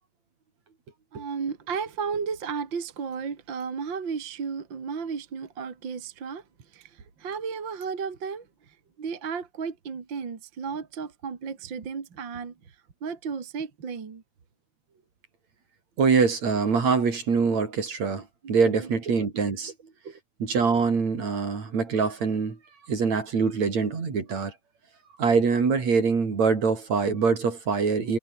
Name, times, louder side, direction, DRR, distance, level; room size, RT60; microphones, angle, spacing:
voice 1, 1.1-6.4 6.7-12.8 13.0-14.2 18.4-18.5 18.8-18.9 20.0-20.2, right 6 dB, 40° right, 2.9 m, -34 dB
voice 2, 16.0-19.7 20.4-22.6 22.9-24.5 25.2-28.2, right 5 dB, 65° right, 5.3 m, -24 dB
omnidirectional pair, 3.4 m